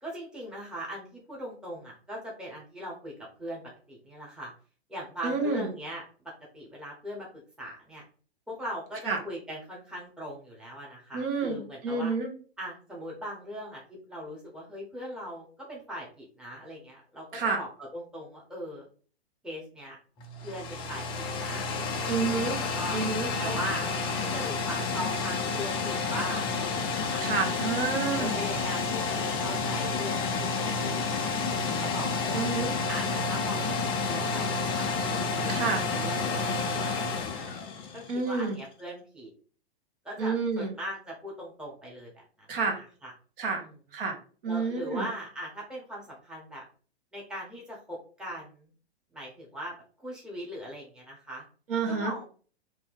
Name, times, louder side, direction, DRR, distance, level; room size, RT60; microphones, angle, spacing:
voice 1, 0.0-3.1 3.4-3.6 3.9-4.5 4.9-6.0 6.5-8.0 8.5-12.1 12.6-18.9 19.4-20.0 20.4-22.2 22.6-23.0 23.4-27.2 28.2-32.4 32.9-35.6 35.9-37.5 37.9-39.3 40.0-42.2 42.8-43.1 43.6-43.7 44.5-46.6 47.1-48.7 49.1-51.4 51.8-52.2, equal, ahead, -3 dB, 0.8 m, -40 dB
voice 2, 5.2-5.7 9.0-9.2 11.1-12.3 17.3-17.6 22.1-22.6 22.9-23.3 27.2-28.3 32.3-32.7 35.5-35.8 38.1-38.6 40.2-40.7 42.5-42.8 43.4-43.6 43.9-44.2 44.4-45.1 51.7-52.1, right 4 dB, 55° right, 3 dB, 1.2 m, -29 dB
sound 1, 20.2-38.3, left 4 dB, 15° left, 0.4 m, -30 dB
2.8 x 2.7 x 4.1 m, 0.40 s
hypercardioid pair, 115°, 32 cm